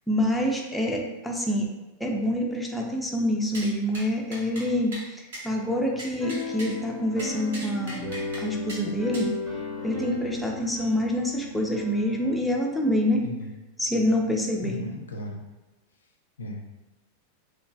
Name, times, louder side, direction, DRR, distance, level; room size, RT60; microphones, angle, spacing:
voice 1, 0.1-1.7 2.0-8.1 8.4-9.3 9.8-13.2 13.8-14.8, equal, 5° left, -1 dB, 0.4 m, -26 dB
sound 1, 3.5-3.7 3.9-4.1 4.3-4.7 4.9-5.1 5.3-5.4 6.0-6.7 7.2-8.4 8.7-8.8 9.1-9.3, right 1 dB, 65° right, 0.7 m, -38 dB
sound 2, 6.1-12.4, left 2 dB, 25° right, 0.8 m, -35 dB
voice 2, 14.6-15.4 16.4-16.6, left 1 dB, 70° left, 1 dB, 0.4 m, -35 dB
2.9 x 2.2 x 2.4 m, 1.1 s
figure-of-eight pair, 90°, 0 cm